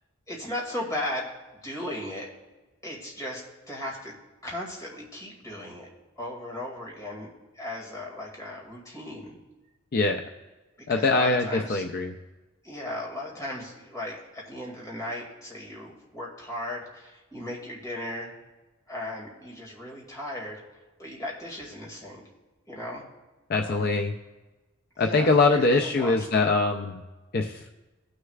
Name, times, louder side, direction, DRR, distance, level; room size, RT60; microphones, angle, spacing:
voice 1, 0.3-2.3 2.8-4.1 4.4-5.9 6.2-7.3 7.5-9.4 10.8-11.9 12.6-18.3 18.9-20.6 21.0-22.2 22.7-23.0 23.6-23.9 25.0-26.5, left 1 dB, 15° left, -2 dB, 2.2 m, -36 dB
voice 2, 10.9-12.1 23.5-24.1 25.0-26.9 27.3-27.7, left 3 dB, 50° left, 4 dB, 0.5 m, -23 dB
18.0 x 6.5 x 2.4 m, 1.2 s
head